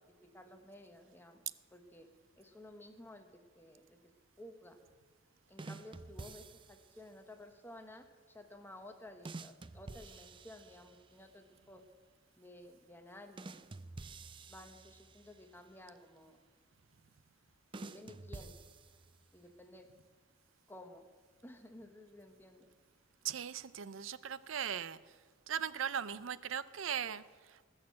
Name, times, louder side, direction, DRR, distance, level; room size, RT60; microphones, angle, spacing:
voice 1, 0.2-1.4 1.7-2.1 2.4-4.0 4.4-4.8 5.5-11.8 12.4-13.7 14.5-16.4 17.7-18.5 19.3-19.9 20.7-21.0 21.4-22.7, left 1 dB, 10° left, 6 dB, 1.1 m, -54 dB
sound 1, 5.6-7.0 9.2-11.2 13.4-15.5 17.7-19.3, right 3 dB, 25° right, 0.4 m, -49 dB
voice 2, 23.2-25.0 25.5-27.7, right 8 dB, 75° right, 16 dB, 0.5 m, -39 dB
19.5 x 6.6 x 7.5 m, 1.4 s
head